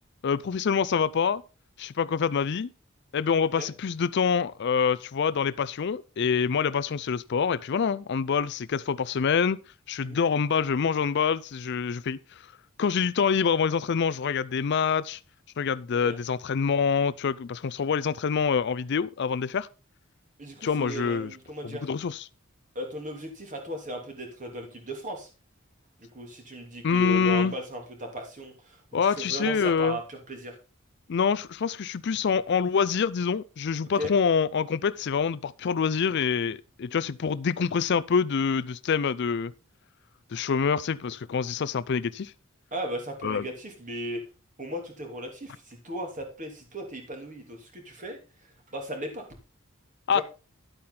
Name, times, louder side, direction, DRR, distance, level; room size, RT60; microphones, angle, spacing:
voice 1, 0.2-1.4 1.8-2.7 3.1-9.6 9.9-12.2 12.8-15.2 15.6-19.7 20.6-21.3 21.6-22.2 26.8-27.5 28.9-30.0 31.1-39.5 40.3-42.3 43.2-43.4 50.1-50.2, left 6 dB, 55° left, 0.4 m, -26 dB
voice 2, 20.4-21.9 22.7-25.3 26.0-30.6 33.9-34.1 42.7-44.2 44.6-49.2 50.1-50.2, equal, 35° right, 3.0 m, -36 dB
10.5 x 8.6 x 3.8 m
head